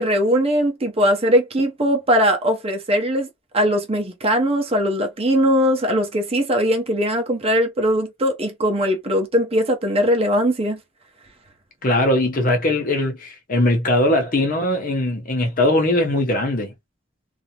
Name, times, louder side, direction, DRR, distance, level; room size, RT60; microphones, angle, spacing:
voice 1, 0.0-3.3 3.5-10.8, equal, 30° right, 0.7 m, -20 dB
voice 2, 11.8-16.7, left 1 dB, 45° left, 0.9 m, -20 dB
2.5 x 2.0 x 2.9 m
head